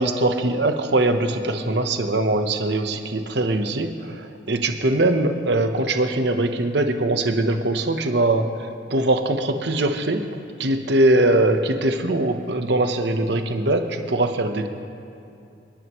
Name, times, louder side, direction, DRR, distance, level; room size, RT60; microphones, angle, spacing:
voice 1, 0.0-8.5 8.9-10.2 10.6-14.7, right 2 dB, 60° right, 6 dB, 1.0 m, -21 dB
27.0 x 11.0 x 3.1 m, 2.6 s
head